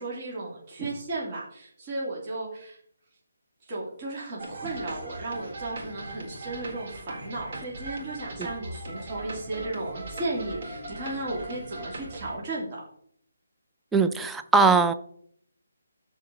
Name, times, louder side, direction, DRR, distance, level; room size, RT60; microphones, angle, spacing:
voice 1, 0.0-2.8 3.7-12.8, right 2 dB, 30° right, 2.7 m, -35 dB
sound 1, 4.4-12.4, right 2 dB, 50° right, 3.7 m, -39 dB
voice 2, 13.9-14.9, right 4 dB, 5° right, 0.4 m, -20 dB
13.5 x 4.6 x 4.0 m
figure-of-eight pair, 155°, 0 cm